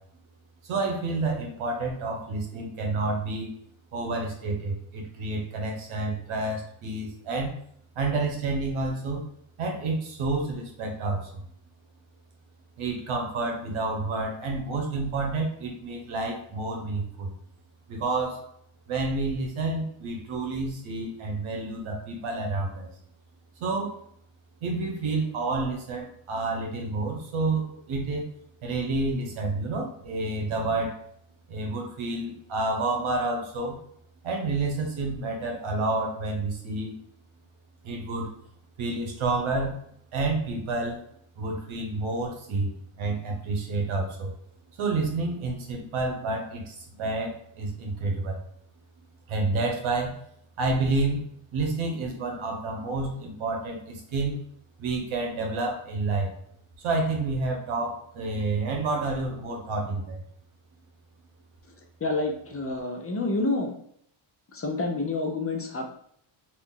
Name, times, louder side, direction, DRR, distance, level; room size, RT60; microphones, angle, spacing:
voice 1, 0.6-3.5 3.9-7.6 7.9-9.3 9.6-11.4 12.8-17.4 17.9-18.4 18.9-22.9 23.6-24.0 24.6-28.3 28.6-31.0 31.5-33.8 34.2-36.9 37.8-38.3 38.8-39.8 40.1-41.0 41.4-44.3 44.8-48.4 49.3-50.2 50.6-51.2 51.5-54.4 54.8-56.3 56.8-60.2, right 3 dB, 85° right, 1 dB, 1.0 m, -29 dB
voice 2, 62.0-63.8 64.5-65.9, left 2 dB, 30° left, 2 dB, 0.6 m, -28 dB
2.8 x 2.5 x 3.7 m, 0.67 s
cardioid pair, 105°, 48 cm